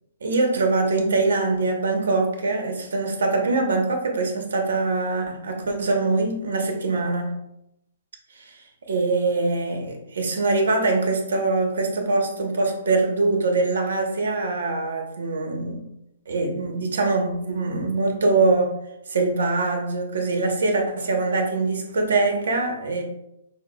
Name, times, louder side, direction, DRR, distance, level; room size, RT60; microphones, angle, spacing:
voice 1, 0.2-7.3 8.3-8.6 8.9-15.9 16.3-18.7 19.1-23.0, right 3 dB, 80° right, 3 dB, 0.9 m, -23 dB
6.3 x 2.2 x 2.3 m, 0.82 s
hypercardioid pair, 165°, 0 cm